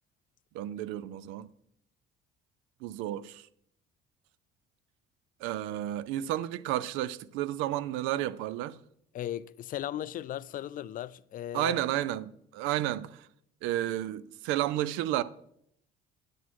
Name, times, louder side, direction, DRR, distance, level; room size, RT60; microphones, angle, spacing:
voice 1, 0.5-1.5 2.8-3.4 5.4-8.8 11.5-13.3 13.6-15.2, right 13 dB, 85° right, 0.5 m, -32 dB
voice 2, 9.1-11.8, left 12 dB, 45° left, 0.4 m, -37 dB
9.8 x 6.3 x 4.6 m
cardioid pair, 105°, 19 cm